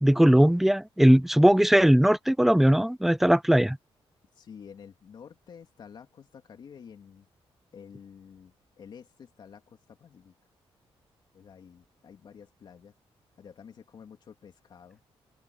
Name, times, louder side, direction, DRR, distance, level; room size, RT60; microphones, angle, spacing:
voice 1, 0.0-3.8, equal, ahead, 0.3 m, -19 dB
voice 2, 4.4-7.3 7.7-10.3 11.3-12.9 13.4-15.0, left 7 dB, 50° left, 3.0 m, -50 dB
open air
wide cardioid pair, 175°, 10 cm